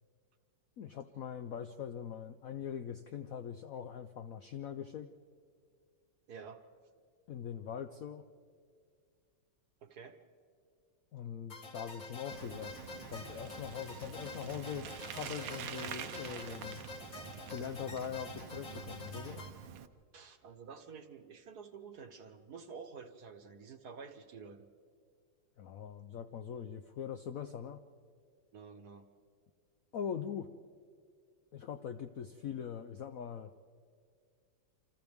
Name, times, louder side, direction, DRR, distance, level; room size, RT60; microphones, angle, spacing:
voice 1, 0.8-5.1 7.3-8.3 11.1-12.7 13.1-16.8 17.5-19.4 25.6-27.8 29.9-30.5 31.5-33.5, left 8 dB, 70° left, 8 dB, 0.8 m, -42 dB
voice 2, 6.3-6.6 9.8-10.2 20.1-24.7 28.5-29.1, right 5 dB, 60° right, 7 dB, 1.5 m, -50 dB
sound 1, 11.5-19.5, left 3 dB, 45° left, 2.3 m, -48 dB
Bicycle, 12.3-19.9, right 9 dB, 75° right, 1.4 m, -46 dB
28.5 x 26.0 x 3.5 m, 2.2 s
omnidirectional pair, 2.1 m